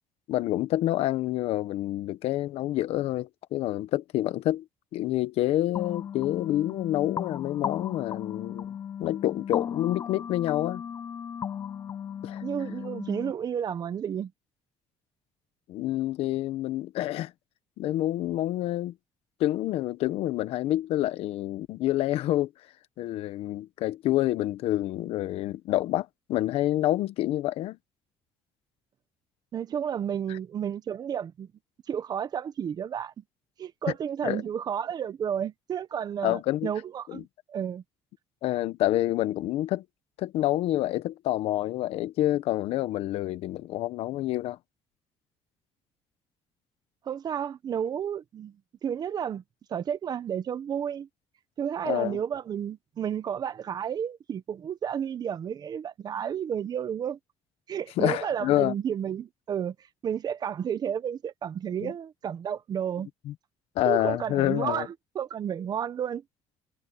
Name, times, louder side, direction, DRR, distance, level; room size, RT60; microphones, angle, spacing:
voice 1, 0.3-4.6 4.9-10.8 12.2-12.4 15.7-17.3 17.8-18.9 19.4-22.5 23.0-27.8 34.2-34.4 36.2-36.7 37.1-37.2 38.4-39.8 40.2-44.6 51.8-52.2 58.0-58.7 61.8-61.9 63.2-63.3 63.7-64.9, left 14 dB, 70° left, 1.1 m, -28 dB
sound 1, 5.8-13.3, left 8 dB, 30° left, 0.6 m, -36 dB
voice 2, 12.4-14.3 29.5-31.5 31.9-33.2 33.6-37.8 47.0-48.6 48.8-49.4 49.7-51.1 51.6-57.2 57.7-59.7 60.0-63.1 63.9-66.2, right 8 dB, 40° right, 1.1 m, -32 dB
cardioid pair, 135°, 10 cm